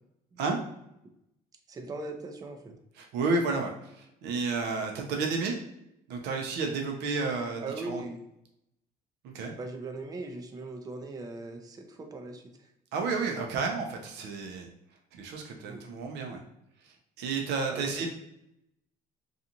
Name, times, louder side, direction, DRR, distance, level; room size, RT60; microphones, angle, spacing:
voice 1, 1.7-2.8 7.6-8.2 9.6-12.7 15.7-15.9 17.7-18.1, right 2 dB, 20° right, 4 dB, 0.4 m, -39 dB
voice 2, 3.0-5.6 6.1-8.0 9.3-9.5 12.9-14.7 15.2-16.4 16.8-18.1, right 4 dB, 80° right, 2 dB, 0.5 m, -31 dB
2.5 x 2.4 x 2.8 m, 0.80 s
cardioid pair, 110°, 17 cm